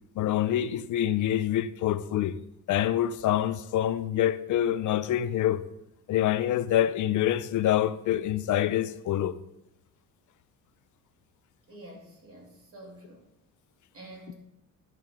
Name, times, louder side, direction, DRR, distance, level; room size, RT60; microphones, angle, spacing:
voice 1, 0.2-2.4 2.7-5.6 6.1-9.4, left 11 dB, 60° left, 0.5 m, -26 dB
voice 2, 11.7-13.3 13.9-14.3, right 1 dB, 45° right, 2.8 m, -48 dB
10.5 x 7.4 x 3.7 m
cardioid pair, 135°, 34 cm